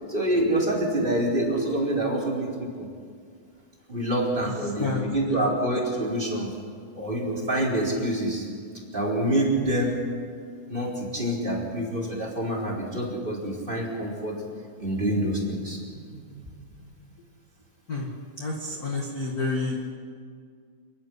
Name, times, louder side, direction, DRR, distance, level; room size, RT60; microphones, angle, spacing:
voice 1, 0.1-2.9 3.9-6.5 6.9-8.5 8.9-10.0 10.7-14.4 14.8-16.0, right 1 dB, 15° right, -2 dB, 4.1 m, -26 dB
voice 2, 4.4-5.5 17.9-18.1 18.4-19.9, left 3 dB, 35° left, -1 dB, 1.8 m, -30 dB
29.5 x 11.5 x 9.8 m, 2.1 s
omnidirectional pair, 4.2 m